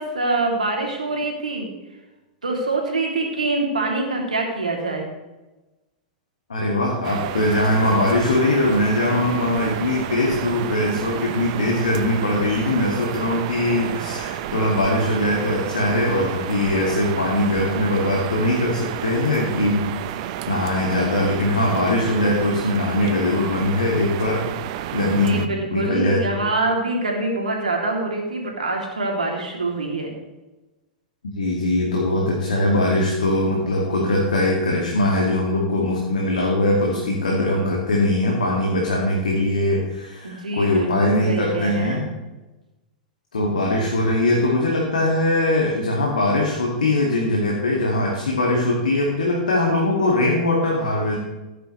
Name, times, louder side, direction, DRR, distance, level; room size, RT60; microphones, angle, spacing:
voice 1, 0.0-1.7 2.4-5.1 25.2-30.1 38.5-38.6 40.2-42.0, right 2 dB, 90° right, 0 dB, 2.9 m, -25 dB
voice 2, 6.5-19.9 20.2-24.4 24.9-25.4 25.7-26.4 31.4-42.1 43.3-51.2, left 1 dB, 85° left, -2 dB, 2.2 m, -21 dB
sound 1, 7.0-25.5, right 11 dB, 55° right, 0.7 m, -31 dB
15.5 x 9.9 x 3.2 m, 1.1 s
hypercardioid pair, 100°, 4 cm